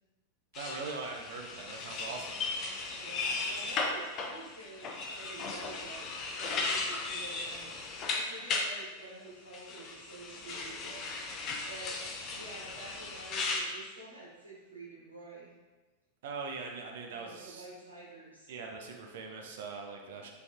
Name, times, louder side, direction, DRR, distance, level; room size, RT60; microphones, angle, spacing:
sound 1, 0.5-8.7 9.5-13.6, left 3 dB, 35° left, 0.5 m, -36 dB
voice 1, 0.5-2.5 2.9-3.0 16.2-17.7 18.5-20.3, right 4 dB, 55° right, 2 dB, 0.5 m, -41 dB
voice 2, 3.0-12.0 12.3-15.5 17.1-18.5 20.2-20.3, right 2 dB, 85° right, -6 dB, 1.4 m, -49 dB
4.9 x 3.3 x 2.4 m, 1.2 s
figure-of-eight pair, 90°, 0 cm